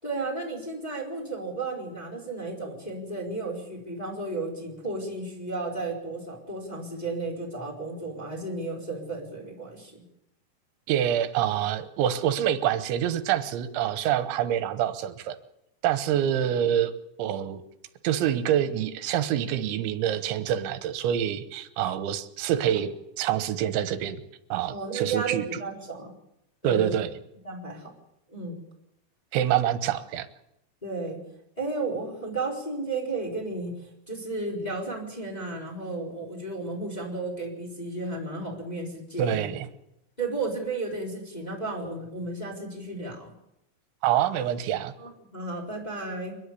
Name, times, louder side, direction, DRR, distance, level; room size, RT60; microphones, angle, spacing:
voice 1, 0.0-10.0 24.7-26.1 26.6-26.9 27.4-27.9 28.3-28.6 30.8-31.2 31.6-39.5 40.2-43.3 45.0-46.4, right 3 dB, 10° left, -2 dB, 3.9 m, -33 dB
voice 2, 10.9-15.4 15.8-16.9 17.2-17.6 18.0-24.2 24.5-25.6 26.6-27.1 29.3-30.3 39.2-39.7 44.0-44.9, right 10 dB, 80° right, 11 dB, 3.5 m, -26 dB
30.0 x 10.5 x 8.5 m, 0.85 s
omnidirectional pair, 5.3 m